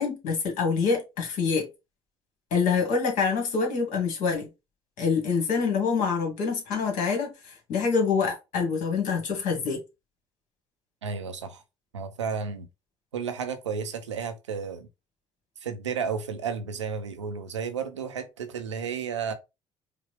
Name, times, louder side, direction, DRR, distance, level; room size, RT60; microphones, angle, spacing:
voice 1, 0.0-1.7 2.5-4.5 5.0-9.8, left 5 dB, 60° left, 1.8 m, -26 dB
voice 2, 11.0-11.6 11.9-12.7 13.1-14.9 15.6-19.3, right 6 dB, 90° right, 0.5 m, -32 dB
4.9 x 2.2 x 3.2 m
hypercardioid pair, 55°, 15 cm